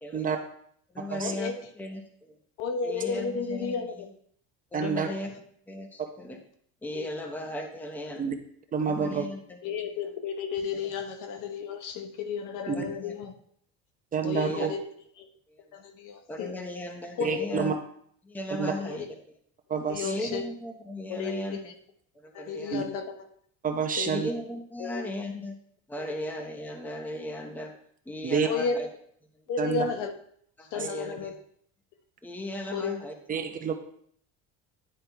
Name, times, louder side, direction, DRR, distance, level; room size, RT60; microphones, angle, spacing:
voice 1, 0.0-0.4 0.9-2.3 2.8-3.8 4.7-5.3 5.7-6.4 6.8-8.3 8.9-9.4 10.7-10.8 12.7-13.1 14.3-14.7 16.3-17.7 18.2-19.0 20.0-21.7 22.2-22.8 24.1-25.5 25.9-27.7 28.1-28.9 30.6-31.4 32.2-33.1, left 1 dB, 5° left, 4 dB, 0.8 m, -36 dB
voice 2, 1.2-1.6 2.6-4.1 4.8-4.9 5.3-5.4 6.9-7.1 9.6-13.3 14.2-14.8 15.2-15.3 15.7-16.5 17.2-17.6 18.7-19.1 19.9-20.5 21.1-21.7 22.3-23.1 24.0-24.1 24.8-25.0 26.0-26.2 28.4-28.8 29.5-30.1 30.7-31.4 32.7-33.0, left 6 dB, 65° left, 7 dB, 1.2 m, -33 dB
voice 3, 4.7-5.1 8.2-8.3 8.7-9.2 12.7-12.8 14.1-14.7 17.2-17.7 18.6-18.7 19.7-20.0 22.7-22.8 23.6-24.3 28.2-28.5 29.6-29.8 33.3-33.7, right 6 dB, 25° right, 5 dB, 1.0 m, -28 dB
10.0 x 3.7 x 4.5 m, 0.63 s
cardioid pair, 130°, 34 cm